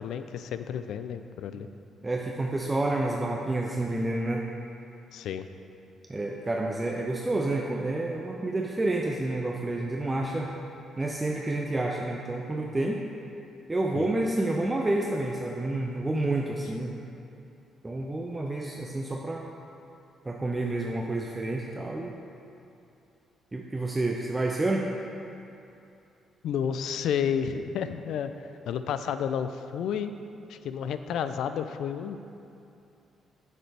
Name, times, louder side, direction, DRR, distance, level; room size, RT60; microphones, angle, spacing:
voice 1, 0.0-1.7 5.1-5.4 13.9-14.1 26.4-28.3 28.7-30.1 30.5-32.2, left 8 dB, 80° left, 10 dB, 0.3 m, -31 dB
voice 2, 2.0-4.5 6.1-10.5 11.0-13.0 13.7-17.0 17.8-19.4 20.2-22.2 23.5-24.9, right 2 dB, 20° right, 0 dB, 0.5 m, -29 dB
7.4 x 6.7 x 3.3 m, 2.7 s
cardioid pair, 90°, 0 cm